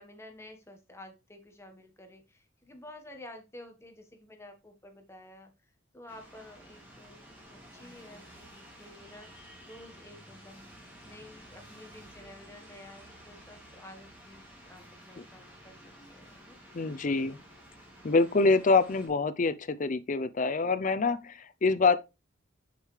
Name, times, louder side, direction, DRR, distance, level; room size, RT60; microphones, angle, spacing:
voice 1, 0.0-5.5 5.9-10.7 11.0-16.6, left 1 dB, 15° left, 1.3 m, -51 dB
sound 1, 6.1-19.1, equal, 10° right, 2.5 m, -52 dB
voice 2, 16.7-17.4 18.0-22.0, left 3 dB, 40° left, 0.5 m, -25 dB
6.5 x 6.5 x 3.2 m
head